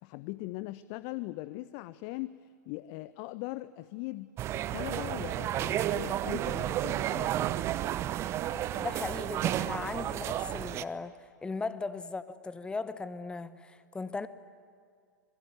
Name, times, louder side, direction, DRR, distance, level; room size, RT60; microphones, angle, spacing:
voice 1, 0.0-7.6, left 18 dB, 40° left, 0.6 m, -40 dB
sound 1, 4.4-10.8, right 12 dB, 25° right, 0.8 m, -32 dB
voice 2, 8.5-11.1 11.4-14.3, left 3 dB, 10° left, 1.0 m, -37 dB
26.5 x 22.0 x 9.5 m
figure-of-eight pair, 100°, 10 cm